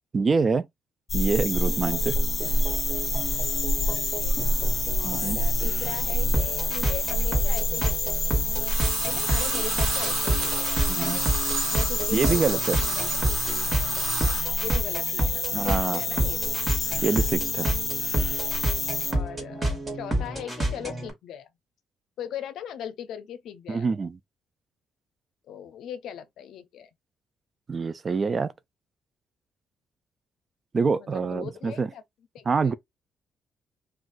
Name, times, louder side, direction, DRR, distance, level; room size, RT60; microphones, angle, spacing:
voice 1, 0.1-0.7 1.1-2.2 5.0-5.4 10.9-11.2 12.1-12.8 15.5-16.0 17.0-17.7 23.7-24.2 27.7-28.5 30.7-31.9 32.5-32.7, right 4 dB, 40° right, 0.3 m, -25 dB
sound 1, 1.1-19.1, left 2 dB, 30° left, 0.6 m, -27 dB
sound 2, 1.5-21.1, right 1 dB, 20° right, 1.5 m, -30 dB
voice 2, 4.0-4.4 5.0-8.2 9.0-11.3 11.7-13.4 14.6-16.5 19.1-21.5 22.2-23.9 25.5-26.9 30.9-32.0 32.3-32.7, left 9 dB, 80° left, 0.5 m, -39 dB
sound 3, 7.7-8.2 8.4-14.4, right 5 dB, 75° right, 1.1 m, -32 dB
2.5 x 2.3 x 3.7 m
cardioid pair, 90°, 0 cm